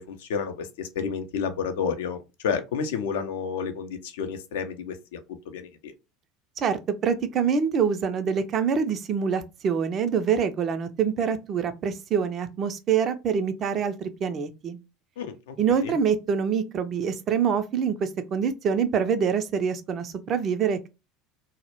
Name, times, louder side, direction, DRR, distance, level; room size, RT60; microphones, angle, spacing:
voice 1, 0.0-5.2 5.5-5.9 15.2-15.6 15.8-16.0, left 6 dB, 65° left, 0.4 m, -30 dB
voice 2, 6.6-14.8 15.6-20.9, right 7 dB, 40° right, 0.3 m, -25 dB
2.1 x 2.0 x 2.9 m
figure-of-eight pair, 70°, 0 cm